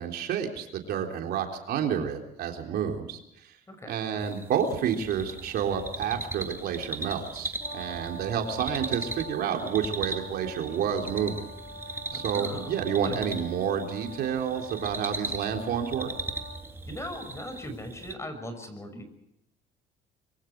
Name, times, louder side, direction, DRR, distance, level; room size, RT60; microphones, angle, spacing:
voice 1, 0.0-3.2 3.9-11.4 12.1-16.1, right 8 dB, 70° right, 3 dB, 3.7 m, -29 dB
voice 2, 3.7-4.2 12.1-13.3 16.9-19.1, equal, 15° left, 8 dB, 6.1 m, -40 dB
sound 1, 4.2-18.1, right 2 dB, 15° right, 2.8 m, -38 dB
Brass instrument, 7.6-16.6, right 1 dB, 50° left, 6.3 m, -44 dB
26.0 x 23.5 x 4.8 m, 0.79 s
cardioid pair, 110°, 17 cm